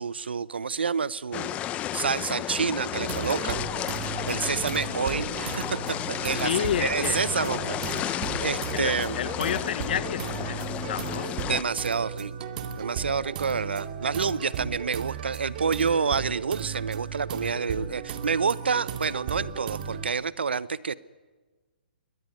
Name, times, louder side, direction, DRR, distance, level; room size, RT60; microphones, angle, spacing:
voice 1, 0.0-3.7 4.1-9.2 11.5-12.3 12.8-20.9, right 5 dB, 85° right, 19 dB, 0.8 m, -28 dB
sound 1, 1.3-11.6, left 12 dB, 25° left, 1.0 m, -33 dB
sound 2, 2.9-20.1, right 7 dB, 50° right, 2.5 m, -35 dB
voice 2, 6.4-7.2 8.7-11.5, left 9 dB, 60° left, 15 dB, 1.3 m, -30 dB
23.5 x 19.0 x 9.4 m, 1.3 s
hypercardioid pair, 130°, 6 cm